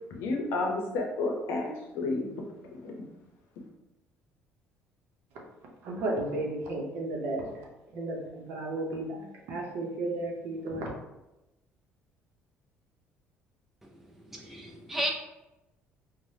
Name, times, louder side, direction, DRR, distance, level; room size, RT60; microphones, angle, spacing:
voice 1, 0.1-2.3 2.7-3.0, left 2 dB, 75° left, 1 dB, 0.7 m, -31 dB
voice 2, 5.8-7.6 7.9-10.9, right 2 dB, 60° right, -1 dB, 0.7 m, -33 dB
voice 3, 13.8-15.1, right 1 dB, 5° right, -1 dB, 0.4 m, -35 dB
3.2 x 2.1 x 2.7 m, 0.96 s
cardioid pair, 180°, 5 cm